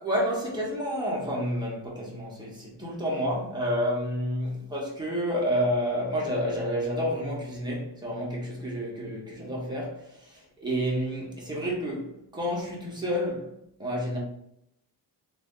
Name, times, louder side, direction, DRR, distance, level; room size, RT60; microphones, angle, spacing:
voice 1, 0.0-13.5 13.8-14.2, equal, 10° right, 1.1 m, -30 dB
3.3 x 2.4 x 3.7 m
wide cardioid pair, 140°, 45 cm